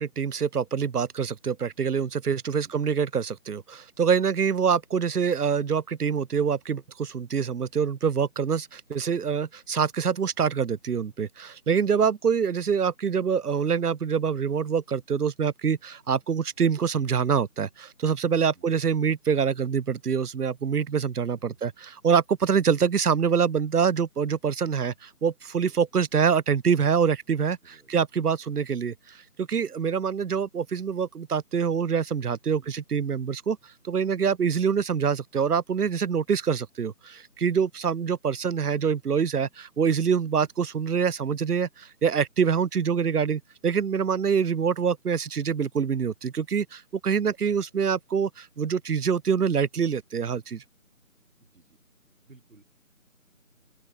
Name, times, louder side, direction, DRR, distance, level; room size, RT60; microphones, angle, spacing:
voice 1, 0.0-33.6 33.8-50.6, right 6 dB, 85° right, 0.7 m, -25 dB
voice 2, 21.3-21.6 25.7-25.8 27.6-27.9 28.5-28.6 32.6-32.8 40.2-40.4 51.4-51.8 52.3-52.6, right 3 dB, 60° right, 3.0 m, -57 dB
open air
figure-of-eight pair, 160°, 45 cm